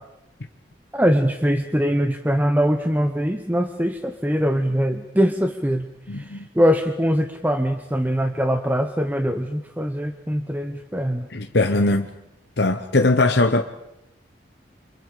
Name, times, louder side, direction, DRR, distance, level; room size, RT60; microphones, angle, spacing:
voice 1, 0.9-5.9 6.1-11.3, equal, 10° right, 0.9 m, -22 dB
voice 2, 6.1-6.5 11.3-12.1 12.6-13.6, left 2 dB, 65° left, 1.0 m, -20 dB
29.5 x 25.5 x 5.1 m
head